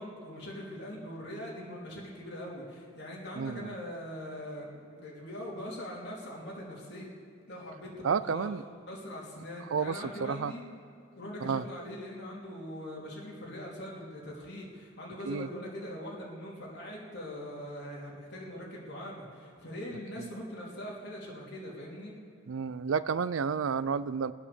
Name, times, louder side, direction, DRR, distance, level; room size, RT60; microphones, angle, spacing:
voice 1, 0.0-7.1 7.5-8.5 8.9-10.6 11.1-22.1, equal, 55° left, -4 dB, 3.4 m, -42 dB
voice 2, 3.4-3.7 8.0-8.6 9.7-10.5 11.4-11.6 15.3-15.5 20.2-20.3 22.5-24.3, right 6 dB, 75° right, 16 dB, 0.4 m, -31 dB
23.0 x 8.6 x 7.0 m, 2.3 s
head